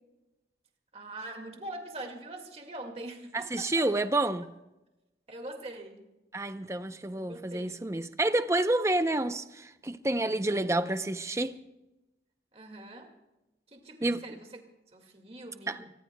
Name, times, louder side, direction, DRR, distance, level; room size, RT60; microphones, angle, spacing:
voice 1, 0.9-4.0 5.3-6.0 7.1-7.9 12.5-13.1 13.7-14.6 14.9-15.9, right 1 dB, 35° right, 1.9 m, -43 dB
voice 2, 3.3-4.4 6.3-11.6 14.0-14.2 15.7-15.8, right 2 dB, 15° right, 0.6 m, -29 dB
25.5 x 19.5 x 2.2 m
head